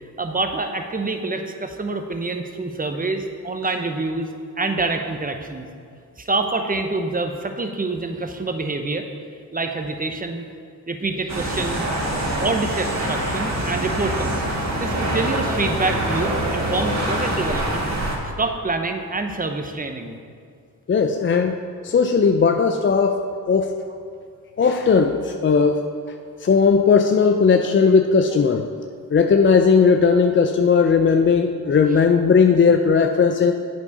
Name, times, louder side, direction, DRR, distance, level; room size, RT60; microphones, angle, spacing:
voice 1, 0.2-4.3 4.6-5.7 6.2-9.0 9.5-10.5 10.9-11.9 12.4-14.4 14.8-17.9 18.4-20.2, right 3 dB, 20° right, 5 dB, 0.8 m, -26 dB
sound 1, 11.3-18.2, right 1 dB, 45° right, 1.8 m, -24 dB
voice 2, 20.9-21.6 21.8-23.7 24.6-25.8 26.4-28.7 29.1-33.5, left 5 dB, 30° left, 5 dB, 0.4 m, -17 dB
8.4 x 4.6 x 5.4 m, 2.2 s
supercardioid pair, 45°, 38 cm